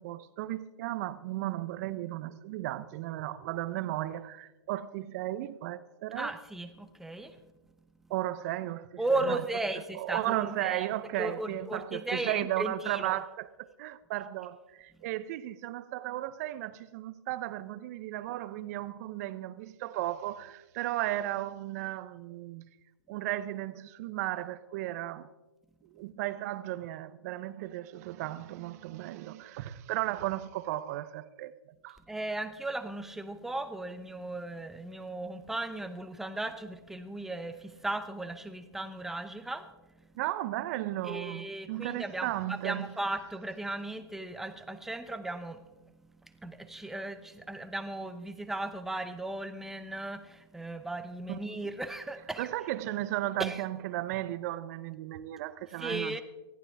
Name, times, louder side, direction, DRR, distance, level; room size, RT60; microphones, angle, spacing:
voice 1, 0.0-6.3 8.1-9.0 9.3-9.4 9.9-22.7 23.1-25.3 25.9-31.5 31.8-32.0 40.2-42.9 51.3-51.4 52.4-56.2, right 15 dB, 35° right, 0.8 m, -35 dB
voice 2, 6.1-7.4 9.0-10.9 11.2-13.2 32.1-39.7 41.0-45.6 46.4-52.5 53.4-53.6 55.8-56.2, right 2 dB, ahead, 0.7 m, -36 dB
19.5 x 14.5 x 3.5 m
hypercardioid pair, 140°, 14 cm